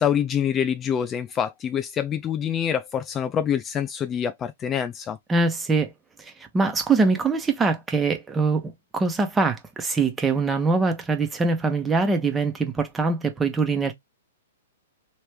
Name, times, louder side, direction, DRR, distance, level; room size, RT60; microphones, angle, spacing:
voice 1, 0.0-5.2, left 8 dB, 25° left, 0.3 m, -26 dB
voice 2, 5.3-5.9 6.2-13.9, right 3 dB, 15° right, 1.0 m, -23 dB
3.2 x 3.0 x 3.3 m
figure-of-eight pair, 115°, 0 cm